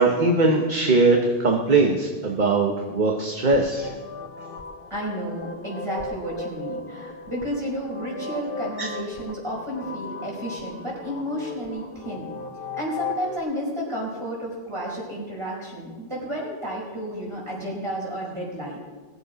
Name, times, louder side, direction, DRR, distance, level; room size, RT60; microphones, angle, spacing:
voice 1, 0.0-3.9 8.8-8.9, right 3 dB, 50° right, 2 dB, 1.2 m, -20 dB
sound 1, 3.4-13.4, left 3 dB, 60° left, 1.2 m, -37 dB
voice 2, 4.9-12.3 12.8-18.8, equal, 30° right, -5 dB, 4.8 m, -31 dB
19.5 x 7.7 x 5.1 m, 1.4 s
omnidirectional pair, 1.1 m